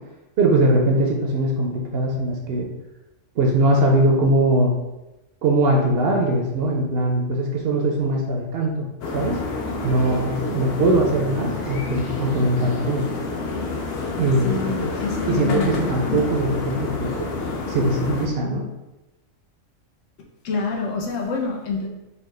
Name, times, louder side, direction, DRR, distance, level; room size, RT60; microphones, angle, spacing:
voice 1, 0.4-2.7 3.4-4.7 5.4-8.9 9.1-9.4 9.8-13.1 14.2-14.9 15.3-17.3 17.7-18.6, right 1 dB, 60° right, 0 dB, 0.7 m, -21 dB
sound 1, 9.0-18.3, left 3 dB, 60° left, 0.7 m, -28 dB
voice 2, 14.4-16.2 20.4-21.9, left 4 dB, 80° left, 0 dB, 1.0 m, -27 dB
4.2 x 2.2 x 3.2 m, 0.99 s
omnidirectional pair, 1.3 m